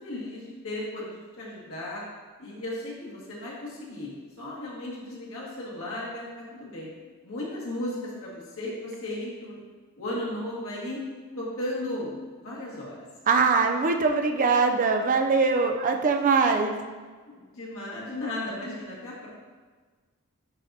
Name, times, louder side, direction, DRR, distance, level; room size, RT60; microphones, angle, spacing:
voice 1, 0.0-2.0 2.4-6.2 6.5-6.9 7.2-9.6 10.0-11.0 11.4-12.1 12.4-13.0 17.3-19.3, left 1 dB, 65° left, -5 dB, 1.9 m, -35 dB
voice 2, 13.3-16.8, right 4 dB, 40° right, 5 dB, 0.4 m, -22 dB
11.0 x 3.9 x 2.8 m, 1.4 s
head